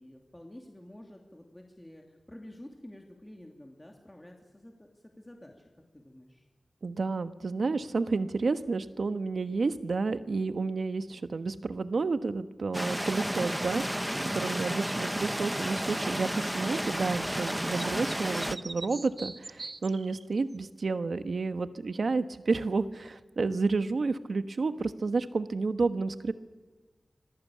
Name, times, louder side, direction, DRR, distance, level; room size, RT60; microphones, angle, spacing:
voice 1, 0.0-6.5, left 1 dB, 15° left, 1 dB, 2.8 m, -50 dB
voice 2, 6.8-26.3, right 4 dB, 75° right, 11 dB, 1.2 m, -30 dB
sound 1, 12.7-18.6, equal, 5° right, 0.9 m, -32 dB
sound 2, 17.4-20.6, right 3 dB, 45° right, 0.9 m, -43 dB
26.5 x 20.5 x 8.6 m, 1.3 s
wide cardioid pair, 85°, 0 cm